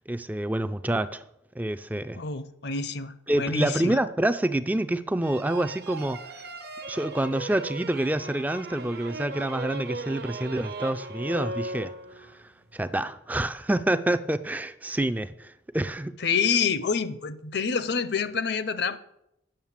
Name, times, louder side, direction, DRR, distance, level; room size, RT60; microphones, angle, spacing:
voice 1, 0.1-1.2 1.6-2.2 3.3-6.5 6.9-11.9 12.7-16.1, right 1 dB, 10° right, 12 dB, 0.3 m, -27 dB
voice 2, 2.2-4.0 16.2-19.0, left 5 dB, 55° left, 14 dB, 0.6 m, -27 dB
sound 1, 5.2-12.4, right 2 dB, 55° right, 0.8 m, -38 dB
8.8 x 6.6 x 7.4 m, 0.81 s
head